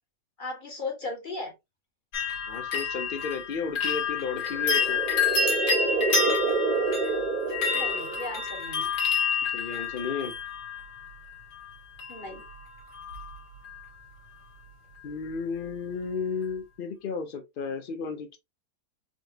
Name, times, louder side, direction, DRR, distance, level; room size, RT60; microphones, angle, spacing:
voice 1, 0.4-1.5 7.7-8.9 12.1-12.4, left 3 dB, 30° left, 1.6 m, -36 dB
sound 1, 2.1-11.1 12.0-12.5 12.8-13.3 13.7-13.8, left 5 dB, 80° left, 2.2 m, -29 dB
voice 2, 2.5-5.0 9.5-10.3 15.0-18.4, left 5 dB, 65° left, 0.5 m, -33 dB
sound 2, 4.3-8.5, right 4 dB, 45° right, 0.6 m, -29 dB
4.2 x 3.2 x 2.8 m
omnidirectional pair, 1.7 m